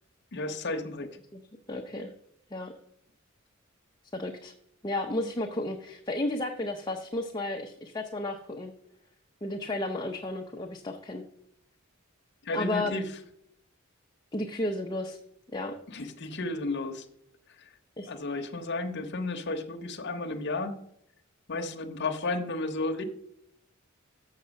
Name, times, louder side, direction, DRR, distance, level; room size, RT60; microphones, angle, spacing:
voice 1, 0.3-1.2 12.4-13.1 15.9-17.1 18.1-20.8 21.5-23.0, left 2 dB, 55° left, 3 dB, 0.9 m, -33 dB
voice 2, 1.7-2.1 2.5-2.7 4.1-4.5 4.8-8.7 9.4-11.2 12.5-12.9 14.3-15.2 15.5-15.7 18.0-18.1, left 2 dB, 20° left, 1 dB, 0.6 m, -33 dB
7.0 x 6.5 x 6.4 m, 0.72 s
head